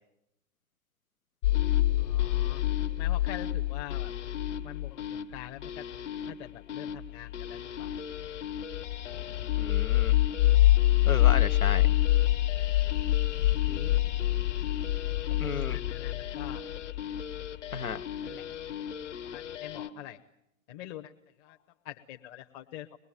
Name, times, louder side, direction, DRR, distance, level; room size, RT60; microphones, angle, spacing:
sound 1, 1.4-19.9, left 14 dB, 55° left, 1.7 m, -27 dB
voice 1, 2.0-2.6 3.0-4.1 4.6-5.8 6.3-7.9 13.7-14.0 15.3-16.6 18.2-18.4 19.3-20.2 20.7-21.1 21.4-21.6 21.8-22.9, left 13 dB, 30° left, 5 dB, 0.9 m, -44 dB
voice 2, 9.6-10.2 11.0-11.9 15.4-15.8 17.7-18.0, left 5 dB, 80° left, 9 dB, 0.9 m, -33 dB
23.5 x 20.5 x 9.2 m, 0.83 s
figure-of-eight pair, 105°, 42 cm